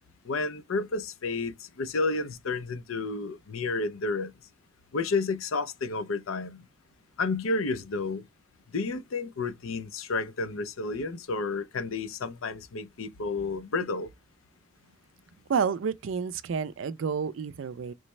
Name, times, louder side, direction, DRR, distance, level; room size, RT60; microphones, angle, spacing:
voice 1, 0.2-4.3 4.9-6.6 7.2-8.2 8.7-14.1, left 3 dB, 85° left, 0.6 m, -31 dB
voice 2, 15.5-17.9, right 6 dB, 70° right, 0.4 m, -29 dB
3.2 x 3.1 x 3.1 m
head